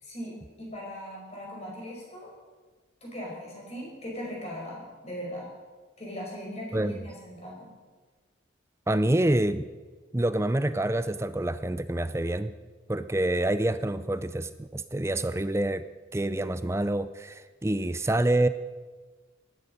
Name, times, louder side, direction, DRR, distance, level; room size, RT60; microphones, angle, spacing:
voice 1, 0.0-2.3 3.0-5.5 6.0-7.7, equal, 30° left, -2 dB, 5.0 m, -39 dB
voice 2, 8.9-9.7 10.1-12.5 12.9-15.9 16.1-18.5, right 1 dB, 15° right, 13 dB, 0.5 m, -27 dB
16.5 x 12.0 x 5.4 m, 1.4 s
head